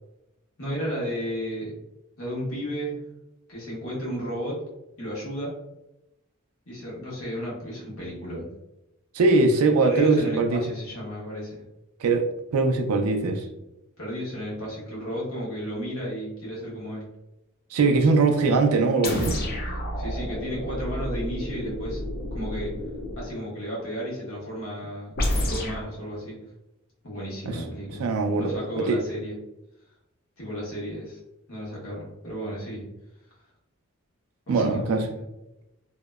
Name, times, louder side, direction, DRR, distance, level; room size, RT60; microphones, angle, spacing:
voice 1, 0.6-1.7 2.2-3.0 3.5-4.6 5.0-5.5 6.7-8.5 9.8-11.6 14.0-17.1 18.0-18.1 19.3-19.5 20.0-22.0 22.3-22.7 23.2-26.4 27.0-28.1 28.4-29.3 30.4-31.2 31.5-32.9 34.5-35.1, equal, 70° left, -6 dB, 1.1 m, -33 dB
voice 2, 9.1-10.6 12.0-12.3 12.5-13.5 17.7-19.3 27.4-27.6 28.0-28.5 28.9-29.0 34.5-35.1, right 3 dB, 90° right, 5 dB, 0.4 m, -21 dB
sound 1, 19.0-23.3 25.2-25.9, left 1 dB, 45° left, 0.5 m, -30 dB
2.7 x 2.0 x 2.2 m, 0.92 s
head